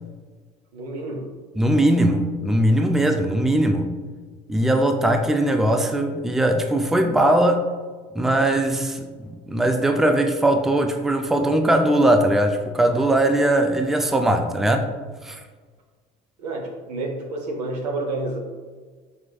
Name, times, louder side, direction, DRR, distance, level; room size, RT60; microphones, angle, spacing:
voice 1, 0.7-1.3 13.5-13.6 16.4-18.4, right 2 dB, 90° right, 1 dB, 0.7 m, -29 dB
voice 2, 1.6-3.9 4.5-7.7 8.1-14.9 15.2-15.4, right 1 dB, ahead, 6 dB, 0.4 m, -20 dB
5.0 x 3.1 x 2.3 m, 1.5 s
hypercardioid pair, 70°, 20 cm